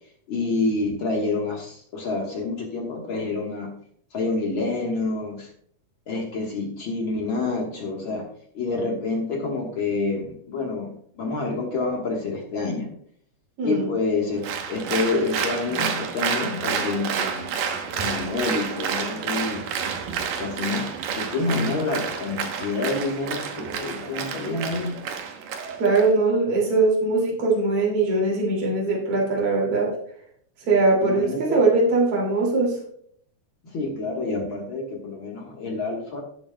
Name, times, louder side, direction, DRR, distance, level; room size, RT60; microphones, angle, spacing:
voice 1, 0.3-3.7 4.1-5.5 6.1-8.3 8.5-12.9 13.6-17.6 17.9-20.0 20.4-20.9 21.2-24.9 31.0-31.6 33.6-36.2, left 3 dB, 50° left, 0 dB, 1.6 m, -28 dB
voice 2, 13.6-13.9 25.8-30.0 30.7-32.7, right 3 dB, 45° right, -2 dB, 3.3 m, -21 dB
Applause, 14.4-26.1, right 6 dB, 75° right, 2.6 m, -29 dB
17.0 x 7.6 x 2.2 m, 0.63 s
omnidirectional pair, 3.9 m